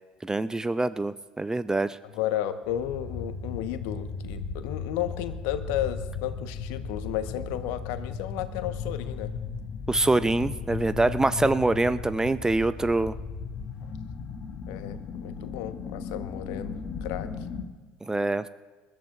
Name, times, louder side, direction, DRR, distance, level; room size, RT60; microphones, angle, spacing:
voice 1, 0.2-2.0 9.9-13.1 18.1-18.5, right 2 dB, 10° right, 14 dB, 0.5 m, -25 dB
voice 2, 2.0-9.3 13.8-13.9 14.7-16.7 17.0-17.3, left 11 dB, 60° left, 10 dB, 1.1 m, -33 dB
sound 1, 2.6-17.6, left 5 dB, 40° left, 2.1 m, -36 dB
28.0 x 14.0 x 2.5 m, 1.3 s
figure-of-eight pair, 65°, 5 cm